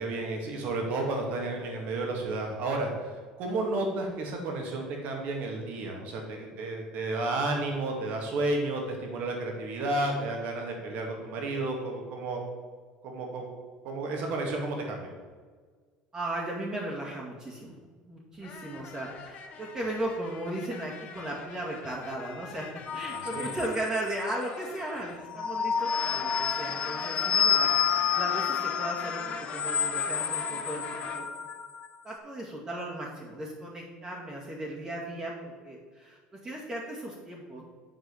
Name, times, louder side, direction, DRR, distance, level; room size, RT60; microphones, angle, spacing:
voice 1, 0.0-12.4 13.0-13.4 13.8-15.1 23.1-23.6, right 2 dB, 65° right, 1 dB, 2.3 m, -32 dB
voice 2, 16.1-17.7 18.1-31.3 32.0-37.6, right 1 dB, 25° right, -7 dB, 2.2 m, -36 dB
sound 1, 18.4-25.4 25.7-31.2, left 5 dB, 50° left, 1.0 m, -41 dB
sound 2, 22.9-24.3 25.2-31.9, left 7 dB, 30° left, 0.7 m, -29 dB
8.0 x 4.7 x 7.2 m, 1.5 s
supercardioid pair, 95°, 3 cm